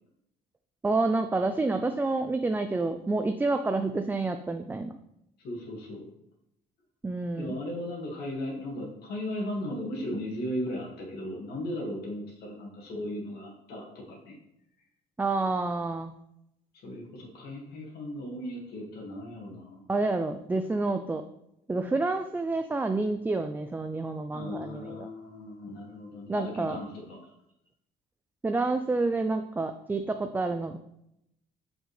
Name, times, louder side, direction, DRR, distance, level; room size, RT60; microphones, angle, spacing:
voice 1, 0.8-4.9 7.0-7.5 15.2-16.1 19.9-21.2 21.7-25.1 26.3-26.8 28.4-30.8, right 3 dB, 10° right, 7 dB, 0.3 m, -28 dB
voice 2, 5.4-6.1 7.4-14.4 16.8-19.8 24.3-27.2, left 1 dB, 70° left, -2 dB, 1.8 m, -36 dB
6.2 x 5.2 x 3.2 m, 0.80 s
cardioid pair, 110°, 17 cm